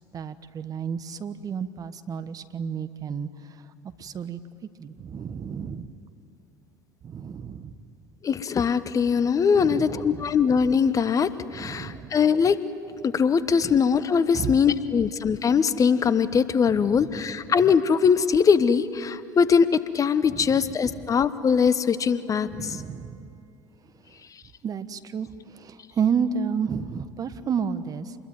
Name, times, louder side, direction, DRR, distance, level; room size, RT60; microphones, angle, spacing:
voice 1, 0.1-3.6 4.0-4.4 4.8-5.9 7.0-7.8 9.5-10.4 11.5-12.1 13.6-13.7 14.3-15.0 16.7-17.5 20.3-21.2 22.5-23.4 24.0-24.2 24.6-28.2, right 6 dB, 35° right, 12 dB, 1.3 m, -32 dB
voice 2, 8.2-12.6 13.0-22.8, left 6 dB, 35° left, 14 dB, 1.1 m, -21 dB
28.0 x 21.5 x 9.3 m, 2.6 s
hypercardioid pair, 70°, 10 cm